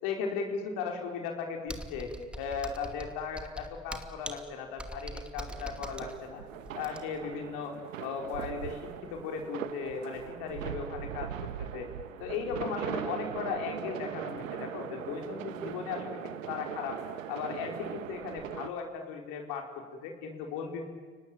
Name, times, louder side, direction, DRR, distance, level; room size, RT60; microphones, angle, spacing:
voice 1, 0.0-6.4 6.7-11.9 12.2-17.0 17.3-20.9, left 6 dB, 65° left, 3 dB, 4.7 m, -37 dB
Computer keyboard, 1.7-7.3, right 1 dB, 5° right, 2.5 m, -42 dB
sound 1, 5.5-18.7, right 10 dB, 90° right, 1.2 m, -40 dB
30.0 x 18.5 x 9.2 m, 1.5 s
hypercardioid pair, 80°, 38 cm